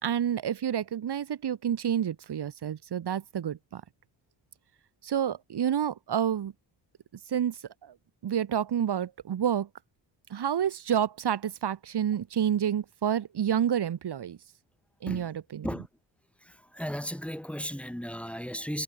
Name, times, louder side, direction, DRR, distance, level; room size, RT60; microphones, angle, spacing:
voice 1, 0.0-3.8 5.0-6.5 7.3-7.9 8.2-9.7 10.3-14.4 15.0-15.7, right 9 dB, 60° right, 3.9 m, -29 dB
voice 2, 16.4-18.8, equal, 5° left, 3.7 m, -35 dB
cardioid pair, 120°, 45 cm